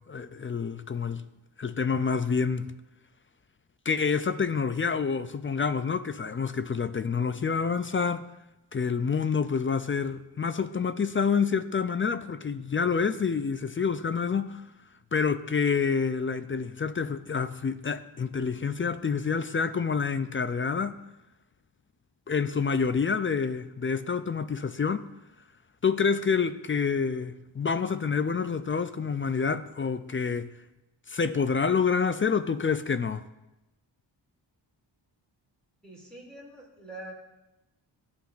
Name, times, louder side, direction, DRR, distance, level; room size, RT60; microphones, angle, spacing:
voice 1, 0.1-1.2 1.6-2.7 3.9-8.2 8.7-14.6 15.1-21.0 22.3-25.0 25.8-30.5 31.1-33.2, left 5 dB, 30° left, 0.3 m, -27 dB
voice 2, 35.8-37.1, right 1 dB, ahead, 2.7 m, -44 dB
15.0 x 5.8 x 2.5 m
wide cardioid pair, 65°, 45 cm